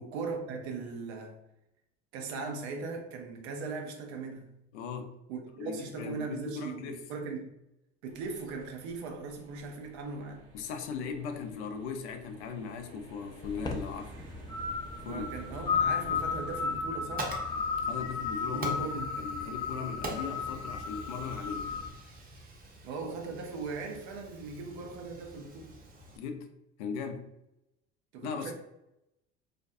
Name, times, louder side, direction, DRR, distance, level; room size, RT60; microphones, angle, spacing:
voice 1, 0.0-1.4 2.1-4.5 5.3-7.5 8.0-10.4 15.0-17.3 18.5-19.1 22.8-25.8 28.1-28.5, right 4 dB, 75° right, 0.7 m, -39 dB
voice 2, 4.7-5.2 5.6-7.0 10.5-14.1 15.0-15.3 17.8-21.8 26.2-26.5 26.8-27.3 28.2-28.5, left 6 dB, 75° left, 0.5 m, -38 dB
sound 1, 8.1-16.8, right 1 dB, 60° right, 1.1 m, -52 dB
sound 2, 13.4-21.9, left 5 dB, 15° left, 0.4 m, -34 dB
Fire, 16.7-26.2, right 2 dB, 25° right, 0.8 m, -45 dB
2.5 x 2.2 x 2.5 m
hypercardioid pair, 75°, 34 cm